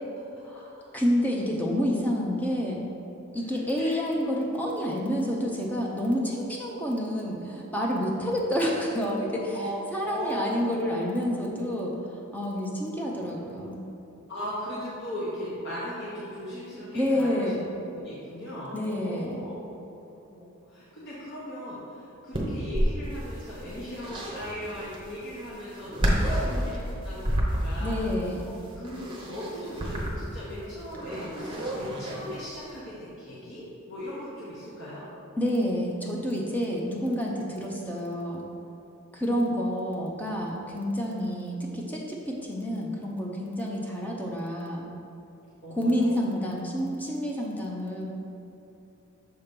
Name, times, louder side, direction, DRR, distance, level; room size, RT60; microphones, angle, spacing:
voice 1, 0.9-2.8 3.3-9.6 9.9-11.9 12.3-13.9 16.9-17.6 18.7-19.4 27.8-28.5 35.4-38.4 39.1-44.9 45.7-48.1, equal, 10° left, -2 dB, 0.5 m, -28 dB
voice 2, 3.5-3.9 9.5-9.7 10.0-10.7 14.3-19.6 20.3-28.0 28.4-35.1 39.4-39.5 45.6-46.4, equal, 55° left, -10 dB, 1.0 m, -38 dB
sound 1, 22.3-32.7, equal, 25° right, 0.7 m, -30 dB
6.6 x 2.9 x 5.2 m, 2.8 s
head